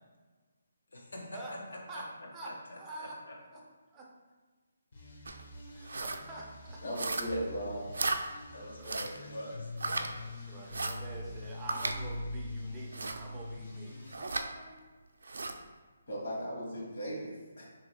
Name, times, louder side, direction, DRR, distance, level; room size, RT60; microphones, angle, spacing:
voice 1, 0.9-1.4 2.4-3.4 7.3-7.4 8.5-10.1, left 1 dB, 90° left, -1 dB, 1.0 m, -44 dB
voice 2, 2.3-3.2 3.5-3.6 3.9-4.1 5.7-6.8 8.5-9.1 10.2-14.8, right 2 dB, 10° right, -4 dB, 0.4 m, -46 dB
sound 1, 4.9-14.1, left 1 dB, 35° left, 0.6 m, -44 dB
sound 2, 5.2-5.4 5.8-6.2 6.9-7.5 7.9-8.2 8.8-9.2 9.8-10.1 10.7-11.0 11.7-12.0 12.9-13.2 14.1-14.5 15.2-15.6, right 3 dB, 80° right, 0.4 m, -35 dB
voice 3, 6.8-7.9 16.1-17.6, equal, 55° left, -4 dB, 1.3 m, -37 dB
3.0 x 2.8 x 4.3 m, 1.3 s
hypercardioid pair, 175°, 0 cm